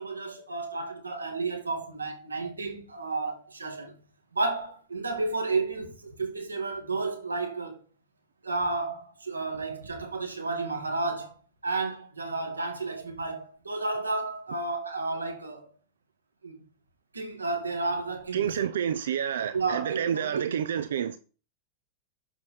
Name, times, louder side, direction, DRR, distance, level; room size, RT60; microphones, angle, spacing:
voice 1, 0.0-3.9 4.3-7.8 8.4-11.3 11.6-15.7 16.4-16.6 17.1-18.6 19.5-20.6, right 3 dB, 80° right, 1.8 m, -32 dB
voice 2, 18.3-21.2, right 9 dB, 60° right, 0.5 m, -29 dB
6.9 x 4.9 x 4.3 m
figure-of-eight pair, 90°, 0 cm